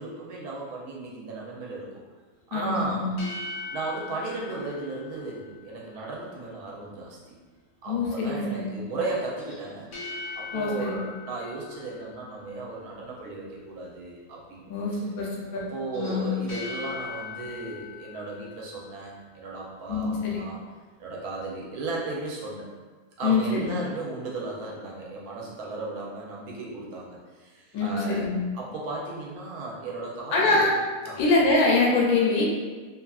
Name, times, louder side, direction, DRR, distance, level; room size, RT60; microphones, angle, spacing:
voice 1, 0.0-2.0 2.5-3.1 3.7-7.3 7.8-9.9 10.4-14.7 15.7-20.6 21.0-22.6 23.2-28.3 28.5-30.7 31.0-31.2, right 2 dB, 90° right, -3 dB, 1.1 m, -35 dB
voice 2, 2.5-3.1 7.9-8.8 10.5-11.0 14.7-15.6 15.9-16.4 19.9-20.4 23.2-23.7 27.7-28.4 30.3-30.7 31.2-32.4, left 3 dB, 80° left, -3 dB, 1.1 m, -24 dB
sound 1, 2.7-6.0 9.4-12.7 15.8-19.4, left 4 dB, 45° left, 0.7 m, -41 dB
2.7 x 2.4 x 2.3 m, 1.4 s
omnidirectional pair, 1.6 m